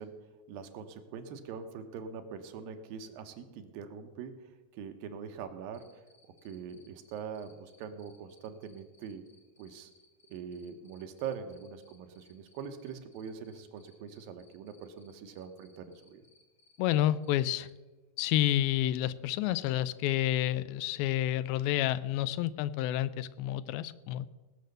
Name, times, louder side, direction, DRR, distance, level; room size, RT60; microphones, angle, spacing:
voice 1, 0.0-6.0 6.4-9.2 9.6-9.9 10.3-16.2, right 7 dB, 80° right, 7 dB, 2.6 m, -43 dB
Cricket, 5.7-17.7, left 4 dB, 5° left, 1.0 m, -65 dB
voice 2, 16.8-17.7 18.2-24.3, left 13 dB, 85° left, 17 dB, 2.4 m, -29 dB
17.5 x 6.6 x 6.6 m, 1.2 s
omnidirectional pair, 4.2 m